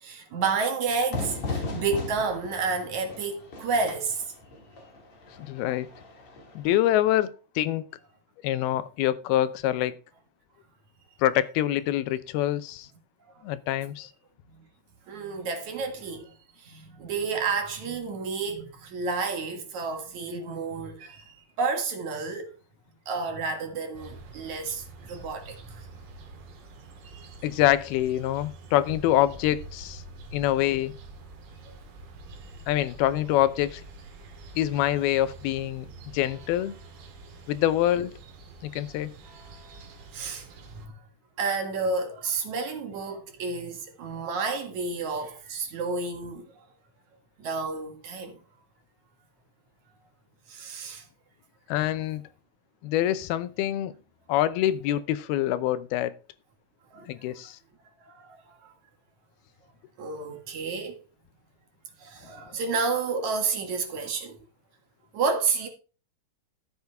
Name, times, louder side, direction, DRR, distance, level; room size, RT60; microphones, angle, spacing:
voice 1, 0.0-4.2 15.1-16.3 16.6-22.5 23.1-25.8 27.1-27.3 30.6-30.7 40.1-40.5 41.4-46.5 47.4-48.4 50.5-51.0 56.9-57.1 58.0-58.6 60.0-61.0 62.0-64.4 65.1-65.7, right 4 dB, 55° right, 2.7 m, -30 dB
Fire / Fireworks, 1.1-6.6, left 3 dB, 40° left, 2.9 m, -37 dB
voice 2, 5.4-5.9 6.6-7.9 8.4-10.0 11.2-12.9 13.4-14.1 27.4-30.0 30.3-30.9 32.7-33.8 34.6-35.9 36.1-36.8 37.5-38.1 38.6-39.1 51.7-52.2 52.8-53.9 54.3-56.1 57.1-57.6, left 13 dB, 90° left, 2.7 m, -25 dB
sound 1, 23.9-40.9, right 3 dB, 80° right, 3.8 m, -46 dB
13.0 x 8.2 x 3.5 m
omnidirectional pair, 4.3 m